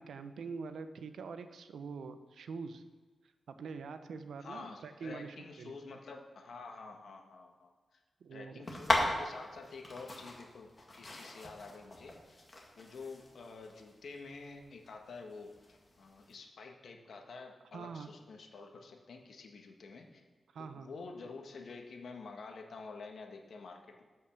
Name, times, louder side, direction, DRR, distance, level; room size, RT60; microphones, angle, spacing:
voice 1, 0.0-2.8 3.5-6.0 8.2-8.7 17.7-18.1 20.5-20.9, right 5 dB, 90° right, 9 dB, 0.7 m, -44 dB
voice 2, 4.4-8.0 8.3-10.7 11.0-12.4 12.8-20.2 20.6-24.0, left 4 dB, 70° left, 3 dB, 1.4 m, -49 dB
sound 1, 8.6-16.3, left 1 dB, 25° left, 1.8 m, -38 dB
13.0 x 5.5 x 5.9 m, 1.3 s
wide cardioid pair, 140°, 0 cm